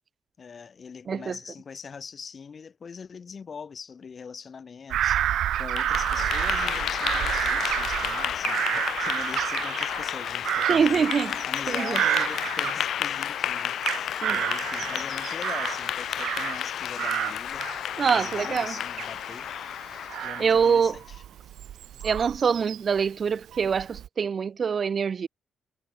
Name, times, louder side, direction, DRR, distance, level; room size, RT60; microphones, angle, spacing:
voice 1, 0.4-5.2 5.6-11.1 11.4-19.5 20.2-21.2, left 6 dB, 50° left, 5.0 m, -42 dB
voice 2, 1.1-1.4 10.7-11.3 11.7-12.0 14.2-14.4 18.0-18.7 20.4-21.0 22.0-25.3, right 6 dB, 55° right, 2.9 m, -24 dB
Bird vocalization bird call bird song / Crow, 4.9-13.2 13.6-16.7 17.0-23.0 23.5-24.1, right 11 dB, 80° right, 0.5 m, -30 dB
Clapping / Applause, 5.5-20.8, left 10 dB, 75° left, 2.9 m, -31 dB
cardioid pair, 70°, 0 cm